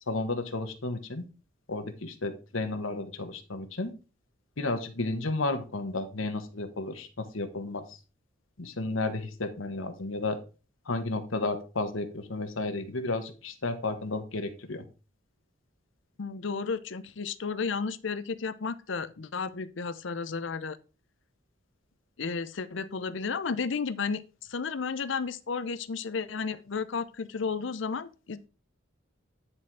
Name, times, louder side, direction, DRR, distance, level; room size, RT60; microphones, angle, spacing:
voice 1, 0.1-1.2 1.7-3.9 4.6-7.8 8.6-10.4 10.9-14.8, left 2 dB, 85° left, 1.3 m, -32 dB
voice 2, 16.2-20.8 22.2-24.2 24.5-28.5, left 5 dB, 70° left, 0.6 m, -33 dB
9.8 x 4.3 x 4.7 m
head